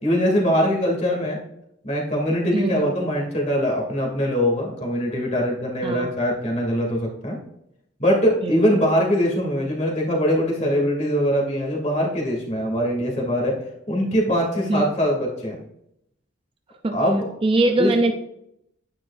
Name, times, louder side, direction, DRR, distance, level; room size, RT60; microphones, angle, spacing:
voice 1, 0.0-1.4 1.8-7.4 8.0-13.6 13.9-15.6 16.9-17.3 17.8-17.9, equal, 35° left, -1 dB, 2.5 m, -22 dB
voice 2, 2.5-2.9 5.8-6.1 8.4-8.8 14.7-14.9 16.8-17.0 17.4-18.1, right 2 dB, 25° right, 4 dB, 0.5 m, -22 dB
9.8 x 9.6 x 2.5 m, 0.78 s
head